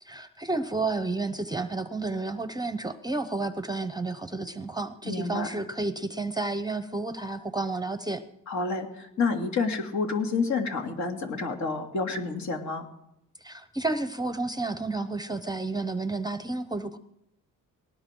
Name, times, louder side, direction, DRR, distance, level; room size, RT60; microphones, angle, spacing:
voice 1, 0.0-8.2 13.4-17.0, right 3 dB, 10° right, 11 dB, 0.8 m, -31 dB
voice 2, 5.0-5.5 8.5-12.9, left 4 dB, 60° left, 3 dB, 2.9 m, -29 dB
20.0 x 18.5 x 3.8 m, 0.81 s
cardioid pair, 115°, 32 cm